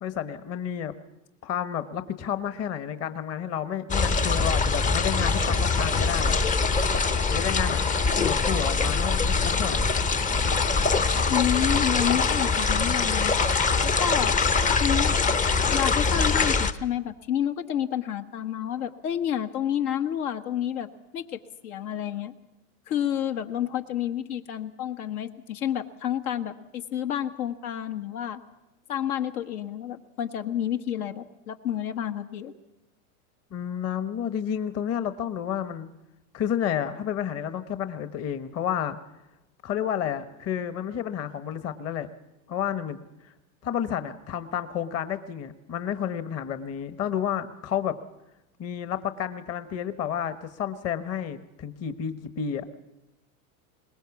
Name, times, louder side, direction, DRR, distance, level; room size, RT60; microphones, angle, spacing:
voice 1, 0.0-1.0 1.4-6.4 7.3-7.8 8.2-9.9 33.5-35.9 36.3-39.0 39.6-42.1 42.5-43.0 43.2-43.3 43.6-48.0 48.6-52.7, left 9 dB, 35° left, 11 dB, 1.2 m, -30 dB
sound 1, 3.9-16.7, left 4 dB, 20° left, 0.7 m, -23 dB
voice 2, 11.3-13.3 13.8-14.3 14.8-15.2 15.6-20.9 21.1-22.3 22.9-28.4 28.9-32.5, left 10 dB, 75° left, 6 dB, 1.6 m, -29 dB
22.0 x 20.0 x 7.2 m, 0.94 s
supercardioid pair, 120°, 44 cm